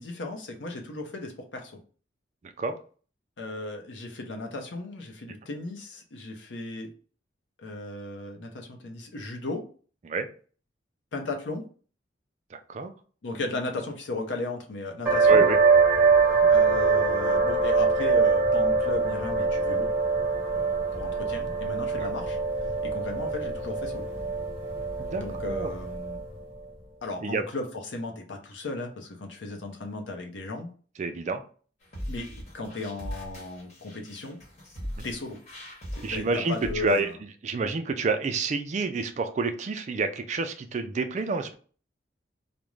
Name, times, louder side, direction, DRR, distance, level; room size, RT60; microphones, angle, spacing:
voice 1, 0.0-1.7 3.4-6.9 7.6-9.6 11.1-11.6 13.2-15.5 16.5-19.9 20.5-22.4 22.8-24.1 25.2-26.2 27.0-30.7 32.1-34.4 35.0-35.4 36.1-37.1, left 2 dB, 90° left, 4 dB, 0.6 m, -36 dB
voice 2, 12.5-12.9 15.3-15.6 25.0-25.7 27.2-27.4 31.0-31.4 35.0-35.1 36.0-37.1 37.4-41.6, right 3 dB, 40° right, 8 dB, 0.3 m, -28 dB
sound 1, 15.1-26.4, right 4 dB, 10° right, 0.9 m, -23 dB
sound 2, 31.8-37.0, equal, 40° left, 1.0 m, -40 dB
2.4 x 2.1 x 3.0 m, 0.40 s
head